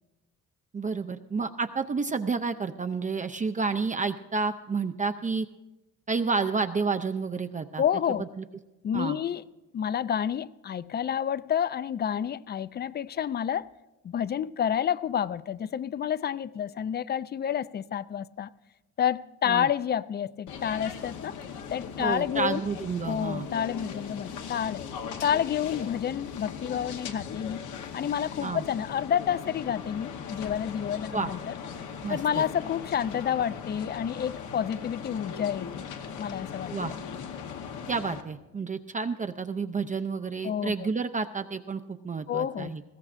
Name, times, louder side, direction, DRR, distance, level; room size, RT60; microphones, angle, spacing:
voice 1, 0.7-5.5 6.1-7.8 8.2-8.4 8.9-9.2 19.5-19.7 22.0-23.5 28.4-28.6 31.1-31.3 32.0-32.4 36.7-36.9 37.9-42.8, right 4 dB, 25° right, 0.5 m, -30 dB
voice 2, 7.8-8.2 8.8-9.4 9.7-13.7 14.0-18.5 19.0-21.4 21.7-22.6 23.1-24.8 25.2-27.6 27.9-31.5 32.1-35.9 36.2-36.7 40.4-40.9 42.3-42.7, left 9 dB, 35° left, 0.4 m, -29 dB
sound 1, 20.5-38.2, left 7 dB, 75° left, 1.1 m, -39 dB
20.5 x 15.5 x 2.5 m
cardioid pair, 90°, 30 cm